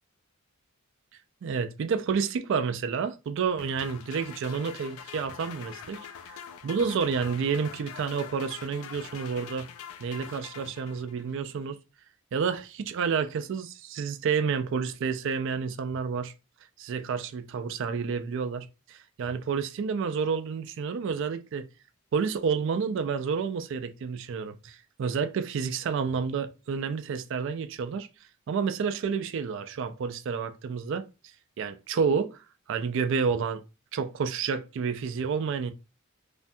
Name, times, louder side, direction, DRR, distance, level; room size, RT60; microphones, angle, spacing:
voice 1, 1.4-6.4 6.6-9.7 10.0-11.8 12.3-16.3 16.8-21.7 22.1-28.1 28.5-31.1 31.6-33.6 33.9-35.7, right 6 dB, 60° right, 0.3 m, -30 dB
sound 1, 3.6-11.3, left 8 dB, 70° left, 0.3 m, -44 dB
2.5 x 2.2 x 2.6 m
head